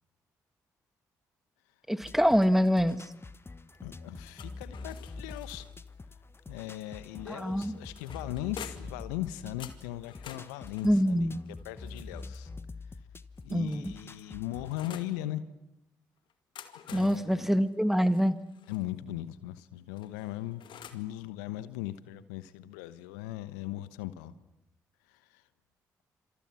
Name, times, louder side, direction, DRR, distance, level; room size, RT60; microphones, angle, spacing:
voice 1, 1.9-3.0 7.3-7.8 10.8-11.4 13.5-13.9 16.9-18.4, equal, 5° right, 13 dB, 1.6 m, -25 dB
sound 1, 2.0-14.8, left 3 dB, 25° left, 1.4 m, -46 dB
voice 2, 3.8-5.7 6.5-11.3 11.6-12.5 13.4-15.4 16.9-17.6 18.7-20.6 20.9-24.3 25.1-25.4, left 14 dB, 80° left, 15 dB, 1.1 m, -38 dB
sound 2, 4.3-5.9 7.3-9.0 9.6-12.5 13.3-15.2 16.3-18.8 20.0-21.1, left 9 dB, 60° left, 2.2 m, -50 dB
27.5 x 27.5 x 5.9 m, 0.86 s
hypercardioid pair, 40°, 9 cm